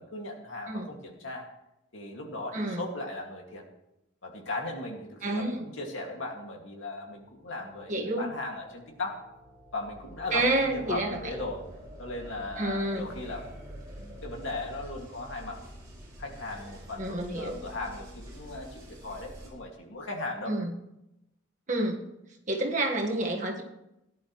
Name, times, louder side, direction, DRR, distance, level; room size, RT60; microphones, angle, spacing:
voice 1, 0.0-1.5 1.9-3.6 4.2-9.3 9.7-11.7 12.0-13.5 14.0-15.6 16.2-20.5, left 2 dB, 75° left, 1 dB, 2.3 m, -37 dB
voice 2, 2.5-2.8 5.2-5.6 7.9-8.3 10.3-11.2 12.6-13.1 17.0-17.6 20.5-20.7 21.7-22.0 22.5-23.6, right 1 dB, 40° right, 1 dB, 1.6 m, -29 dB
sound 1, 7.1-19.5, equal, 20° right, 5.7 m, -47 dB
17.5 x 11.0 x 3.2 m, 0.88 s
head